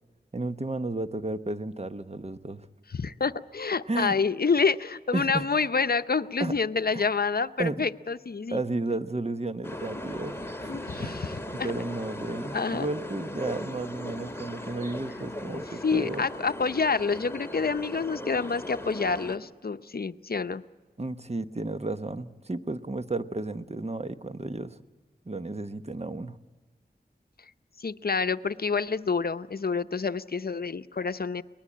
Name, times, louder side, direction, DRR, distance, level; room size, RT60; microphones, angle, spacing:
voice 1, 0.3-2.7 3.9-4.2 5.1-5.6 6.4-6.5 6.9-7.1 7.6-7.9 8.5-16.2 21.0-24.8 25.2-26.4, right 2 dB, 40° right, 10 dB, 1.0 m, -33 dB
voice 2, 2.9-8.6 10.7-11.7 12.5-12.9 15.8-20.6 27.8-31.4, left 5 dB, 65° left, 12 dB, 0.7 m, -28 dB
sound 1, 9.6-19.4, left 1 dB, 15° left, 2.0 m, -38 dB
23.5 x 20.0 x 8.5 m, 1.3 s
wide cardioid pair, 60°, 17 cm